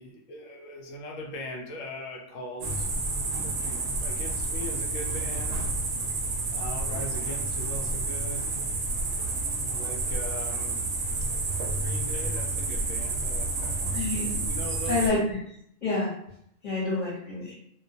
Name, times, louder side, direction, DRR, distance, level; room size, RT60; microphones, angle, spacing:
voice 1, 0.0-2.9 3.4-5.8 6.5-8.7 9.7-10.9 11.7-14.1 14.5-15.0, left 1 dB, 80° left, 0 dB, 0.9 m, -40 dB
sound 1, 2.6-15.1, right 3 dB, 60° right, 0.7 m, -30 dB
voice 2, 13.9-14.4 14.9-15.4 15.8-16.1 16.6-17.5, left 2 dB, 35° left, -9 dB, 0.9 m, -28 dB
2.3 x 2.2 x 2.6 m, 0.74 s
omnidirectional pair, 1.4 m